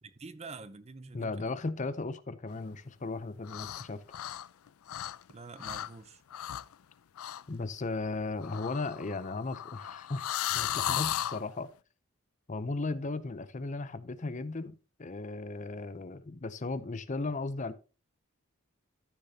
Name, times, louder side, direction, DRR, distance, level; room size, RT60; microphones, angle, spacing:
voice 1, 0.2-1.5 5.3-6.2, right 3 dB, 30° right, 0.6 m, -46 dB
voice 2, 1.1-4.0 7.5-11.7 12.5-17.7, left 3 dB, 35° left, 0.6 m, -36 dB
sound 1, 3.4-3.9 4.1-5.3 5.6-5.9 6.3-6.7 7.2-7.4 8.4-11.4, left 11 dB, 80° left, 0.4 m, -35 dB
13.5 x 6.7 x 2.8 m
head